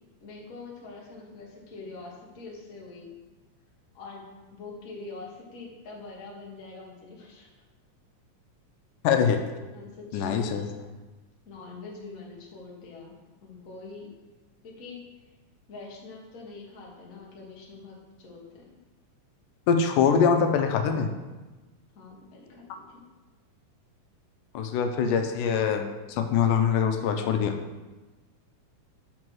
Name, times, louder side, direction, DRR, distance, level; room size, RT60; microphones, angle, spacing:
voice 1, 0.2-3.1 3.9-4.2 4.5-7.5 9.7-10.9 11.4-13.1 13.4-14.1 14.6-15.0 15.7-18.7 21.9-23.0, left 3 dB, 40° left, -3 dB, 1.3 m, -44 dB
voice 2, 9.0-9.4 10.1-10.7 19.7-21.1 24.5-27.6, left 6 dB, 85° left, 6 dB, 2.2 m, -23 dB
7.4 x 5.2 x 4.6 m, 1.2 s
omnidirectional pair, 3.7 m